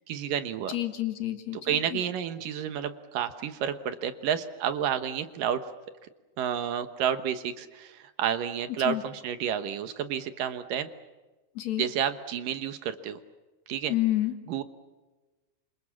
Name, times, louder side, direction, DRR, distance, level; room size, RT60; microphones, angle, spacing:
voice 1, 0.1-0.7 1.7-5.6 6.4-10.9 11.8-13.2 13.7-13.9 14.5-14.6, right 9 dB, 70° right, 10 dB, 2.7 m, -30 dB
voice 2, 0.7-2.0 8.8-9.0 11.5-11.9 13.9-14.4, left 15 dB, 55° left, 7 dB, 2.6 m, -29 dB
27.5 x 27.0 x 7.2 m, 1.2 s
omnidirectional pair, 4.3 m